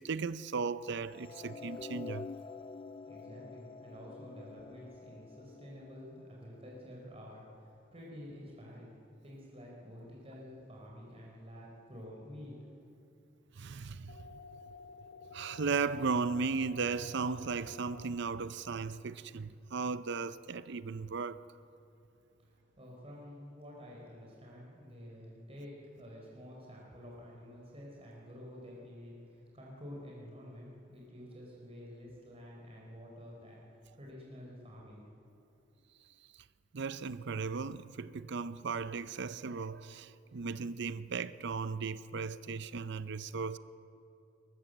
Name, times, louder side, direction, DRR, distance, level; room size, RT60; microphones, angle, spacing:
voice 1, 0.0-2.3 13.6-14.4 15.3-21.4 36.7-43.6, right 4 dB, 65° right, 0.6 m, -36 dB
sound 1, 1.1-7.4, left 4 dB, 25° left, 0.4 m, -48 dB
voice 2, 3.1-12.6 22.4-35.0, equal, 30° right, 4.1 m, -50 dB
sound 2, 14.1-18.1, left 4 dB, 60° left, 1.3 m, -52 dB
22.0 x 19.5 x 7.8 m
head